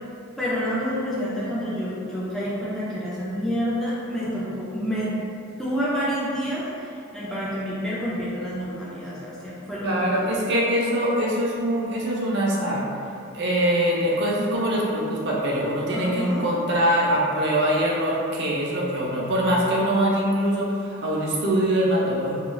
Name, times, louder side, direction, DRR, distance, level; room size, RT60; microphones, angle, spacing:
voice 1, 0.4-5.1 5.6-10.2 15.9-16.5, equal, ahead, -9 dB, 0.3 m, -28 dB
voice 2, 9.8-12.9 13.3-22.3, equal, 55° right, -4 dB, 0.5 m, -23 dB
2.3 x 2.3 x 3.0 m, 2.5 s
head